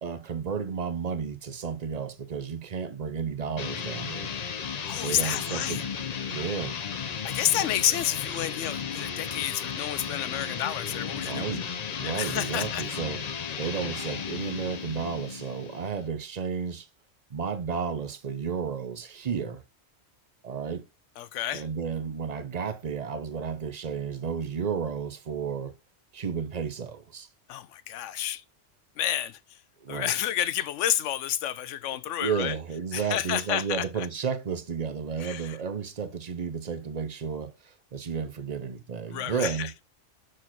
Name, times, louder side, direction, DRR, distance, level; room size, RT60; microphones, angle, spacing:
voice 1, 0.0-4.3 5.0-5.8 6.3-6.7 11.2-11.7 12.0-16.9 17.3-19.6 20.4-20.8 21.5-25.7 26.1-27.3 29.8-30.1 32.2-39.7, right 6 dB, 40° right, 0.7 m, -32 dB
sound 1, 3.6-16.1, left 7 dB, 45° left, 0.6 m, -34 dB
voice 2, 4.8-5.8 7.2-11.5 12.0-12.9 21.2-21.6 27.5-28.4 29.0-29.4 29.9-32.6 32.9-34.1 35.2-35.6 39.1-39.7, left 11 dB, 80° left, 1.0 m, -30 dB
6.1 x 4.4 x 4.5 m
omnidirectional pair, 1.3 m